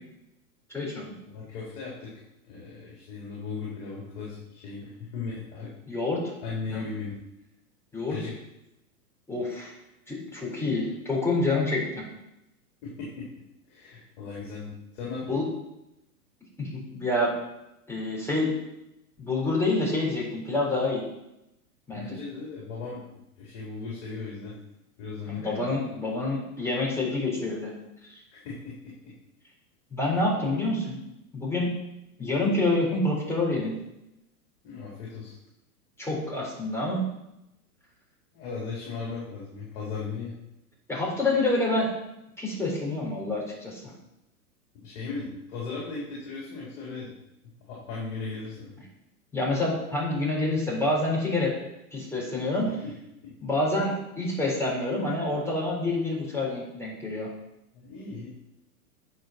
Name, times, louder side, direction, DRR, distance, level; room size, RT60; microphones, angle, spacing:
voice 1, 0.7-1.2 5.9-6.2 6.7-6.9 7.9-8.2 9.3-9.7 10.1-12.0 15.3-15.4 16.6-17.3 17.9-18.5 19.2-21.0 21.9-22.2 25.3-27.7 29.9-31.0 31.3-31.7 32.2-33.7 36.0-37.0 40.9-41.9 42.4-43.9 49.3-51.5 51.9-52.7 53.4-57.3, left 2 dB, 5° left, -4 dB, 4.0 m, -27 dB
voice 2, 1.3-2.1 2.4-5.7 6.4-7.1 8.1-8.3 12.8-13.3 13.7-15.4 21.9-24.6 25.0-25.6 28.3-29.1 34.6-35.3 38.3-40.3 44.8-47.1 47.7-48.7 52.8-52.9 53.2-53.3 57.7-58.3, left 4 dB, 55° left, -6 dB, 3.9 m, -37 dB
9.3 x 5.7 x 5.8 m, 0.87 s
hypercardioid pair, 115°, 45 cm